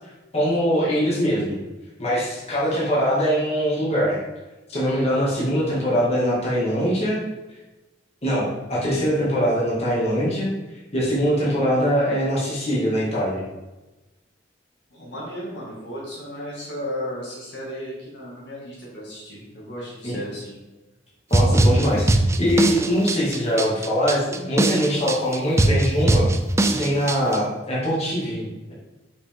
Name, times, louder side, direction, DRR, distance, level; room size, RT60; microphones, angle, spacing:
voice 1, 0.3-1.6 2.0-4.2 4.7-7.2 8.2-10.5 10.9-13.4 20.0-20.2 21.3-22.1 22.4-26.3 26.6-28.7, equal, 35° left, -7 dB, 2.2 m, -22 dB
voice 2, 14.9-20.6, equal, 65° left, -6 dB, 2.0 m, -34 dB
sound 1, 21.3-27.4, right 1 dB, 15° right, 0.3 m, -21 dB
6.4 x 5.7 x 3.6 m, 1.1 s
head